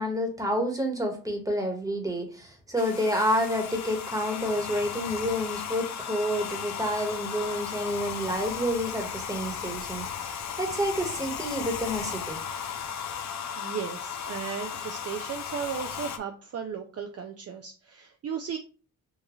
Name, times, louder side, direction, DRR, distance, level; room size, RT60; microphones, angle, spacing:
voice 1, 0.0-12.4, equal, 10° right, 3 dB, 1.3 m, -29 dB
Domestic sounds home sounds, 2.8-16.2, left 7 dB, 50° left, 0.7 m, -36 dB
voice 2, 13.6-18.6, right 7 dB, 45° right, 5 dB, 0.5 m, -35 dB
6.3 x 2.5 x 3.0 m, 0.38 s
cardioid pair, 110°, 35 cm